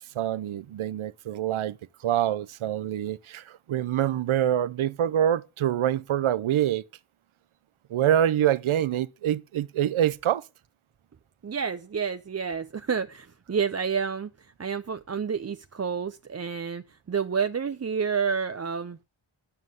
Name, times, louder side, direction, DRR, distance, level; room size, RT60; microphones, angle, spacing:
voice 1, 0.2-1.8 2.0-6.8 7.9-10.4, right 11 dB, 85° right, 0.6 m, -25 dB
voice 2, 11.4-19.0, right 6 dB, 35° right, 0.5 m, -29 dB
9.6 x 6.9 x 7.8 m
wide cardioid pair, 60°, 48 cm